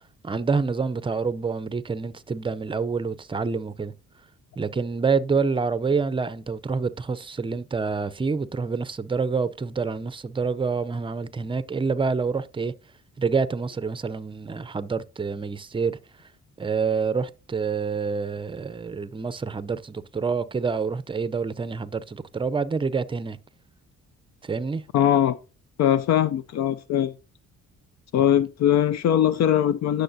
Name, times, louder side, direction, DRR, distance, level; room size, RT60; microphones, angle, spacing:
voice 1, 0.2-3.9 4.6-12.7 13.2-16.0 16.6-23.4 24.4-24.8, right 5 dB, 15° right, 0.5 m, -27 dB
voice 2, 24.9-25.4 25.8-27.1 28.1-30.0, left 10 dB, 60° left, 0.5 m, -21 dB
10.0 x 6.4 x 2.7 m
cardioid pair, 90°, 30 cm